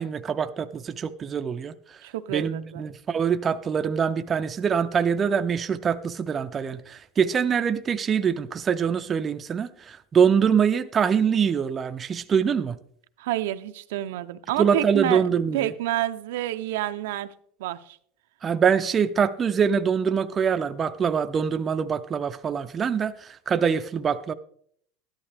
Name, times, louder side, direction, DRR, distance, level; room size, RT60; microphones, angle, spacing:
voice 1, 0.0-1.7 2.3-12.8 14.6-15.7 18.4-24.3, right 7 dB, 20° right, 0.4 m, -24 dB
voice 2, 2.0-2.8 13.2-15.2 15.5-17.3 17.6-18.0, right 14 dB, 80° right, 0.6 m, -28 dB
13.0 x 11.5 x 3.4 m
supercardioid pair, 160°, 0 cm